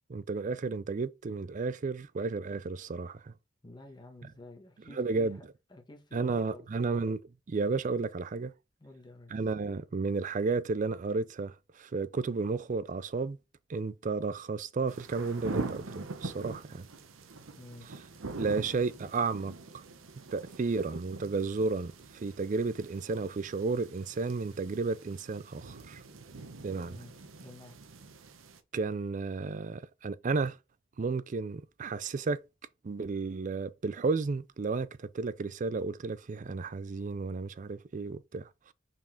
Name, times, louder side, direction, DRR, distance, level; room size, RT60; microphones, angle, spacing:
voice 1, 0.1-3.3 4.9-5.4 6.1-7.2 7.5-8.5 9.3-13.4 13.7-16.9 18.4-19.8 20.3-26.0 26.6-27.0 28.7-30.6 31.0-32.4 32.8-38.7, right 4 dB, 40° right, 0.4 m, -32 dB
voice 2, 3.6-5.4 5.7-6.8 8.8-9.4 17.6-17.9 26.8-27.8, left 2 dB, 20° left, 1.3 m, -51 dB
sound 1, 14.9-28.6, right 3 dB, 85° right, 0.9 m, -44 dB
5.9 x 4.4 x 4.4 m
head